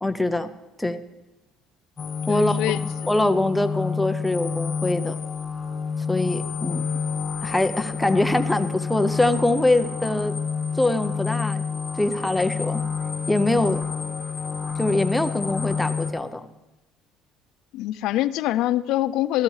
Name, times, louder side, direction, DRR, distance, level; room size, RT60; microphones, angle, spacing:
voice 1, 0.0-0.5 0.8-1.0 2.3-2.8 3.1-5.1 6.1-6.9 7.4-10.3 10.8-11.6 12.0-12.8 13.3-13.8 14.8-16.5, left 2 dB, 5° left, 8 dB, 0.6 m, -23 dB
sound 1, 2.0-16.1, left 5 dB, 30° left, 1.1 m, -29 dB
voice 2, 2.3-2.8 17.7-19.4, left 14 dB, 70° left, 14 dB, 0.3 m, -24 dB
15.0 x 13.0 x 3.2 m, 1.1 s
cardioid pair, 130°, 0 cm